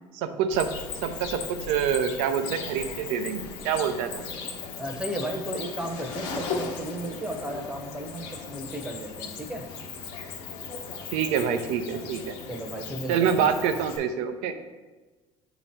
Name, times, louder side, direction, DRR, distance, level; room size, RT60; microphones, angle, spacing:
voice 1, 0.1-0.7 1.0-4.2 11.1-12.3 13.1-14.5, right 7 dB, 85° right, 8 dB, 0.6 m, -26 dB
Cricket, 0.5-14.0, left 5 dB, 90° left, 1.0 m, -37 dB
voice 2, 4.7-9.6 12.5-13.7, right 1 dB, 10° right, 2 dB, 0.8 m, -34 dB
7.7 x 2.9 x 4.4 m, 1.3 s
cardioid pair, 140°, 11 cm